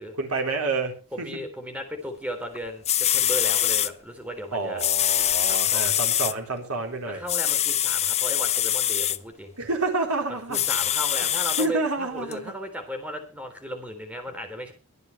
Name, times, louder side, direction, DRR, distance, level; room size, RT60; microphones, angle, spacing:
voice 1, 0.2-1.3 4.5-7.2 9.6-10.6 11.6-12.5, right 3 dB, 85° right, 2 dB, 4.2 m, -28 dB
voice 2, 1.1-4.8 5.5-6.4 7.1-9.5 10.3-14.7, equal, 5° right, 5 dB, 3.6 m, -36 dB
sound 1, 2.6-2.7 2.9-3.9 4.8-6.3 7.3-9.2 10.5-11.7 12.3-12.4, left 11 dB, 30° left, 0.6 m, -23 dB
23.5 x 9.1 x 3.4 m, 0.34 s
head